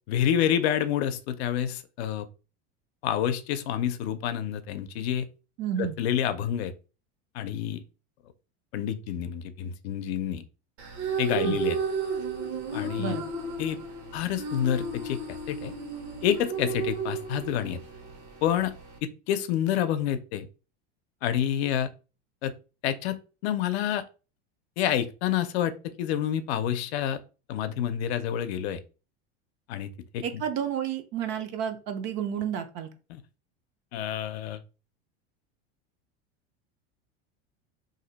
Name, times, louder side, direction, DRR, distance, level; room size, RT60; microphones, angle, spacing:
voice 1, 0.1-2.3 3.0-5.3 5.8-6.7 7.3-7.8 8.7-10.4 11.2-11.8 12.7-13.2 13.6-13.8 14.1-15.2 15.5-15.7 16.2-17.8 18.4-18.7 19.0-20.5 21.2-21.9 22.4-22.5 22.8-24.0 24.8-25.7 26.0-27.2 27.5-28.8 29.7-30.4 33.1-33.2 33.9-34.6, left 10 dB, 75° left, 0.6 m, -28 dB
voice 2, 5.6-6.0 11.4-11.6 13.0-13.2 30.2-32.9, right 9 dB, 40° right, 0.4 m, -31 dB
sound 1, 10.8-19.0, right 4 dB, 75° right, 1.1 m, -33 dB
2.6 x 2.1 x 3.9 m
supercardioid pair, 150°, 32 cm